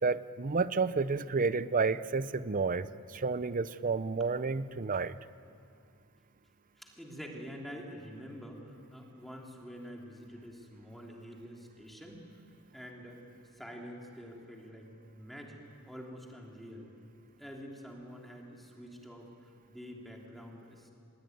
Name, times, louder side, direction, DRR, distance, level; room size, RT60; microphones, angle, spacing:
voice 1, 0.0-5.1, right 4 dB, 40° right, 15 dB, 0.6 m, -31 dB
voice 2, 6.8-12.2 12.7-13.2 13.5-15.6 15.8-16.9 17.4-20.9, equal, ahead, -1 dB, 3.2 m, -47 dB
27.0 x 21.0 x 9.5 m, 2.5 s
head